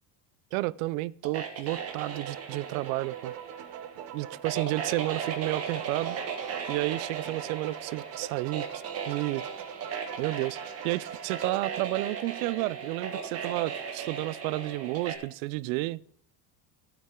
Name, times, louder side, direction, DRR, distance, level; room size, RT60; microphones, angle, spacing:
voice 1, 0.5-3.3 4.1-6.2 6.7-8.7 9.1-9.4 10.2-10.6 10.8-16.0, right 19 dB, 90° right, 0.5 m, -31 dB
sound 1, 1.2-15.2, right 6 dB, 35° right, 1.8 m, -37 dB
sound 2, 1.7-11.6, right 9 dB, 65° right, 1.2 m, -42 dB
12.0 x 8.8 x 3.7 m
cardioid pair, 155°, 41 cm